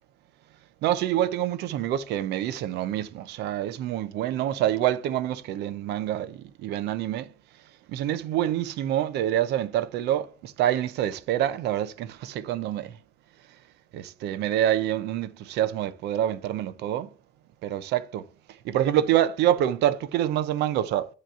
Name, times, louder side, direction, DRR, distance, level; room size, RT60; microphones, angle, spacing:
voice 1, 0.8-7.3 7.9-13.0 13.9-17.1 17.6-18.3 18.6-21.1, right 12 dB, 80° right, 0.7 m, -26 dB
9.2 x 3.2 x 5.6 m
cardioid pair, 110°, 17 cm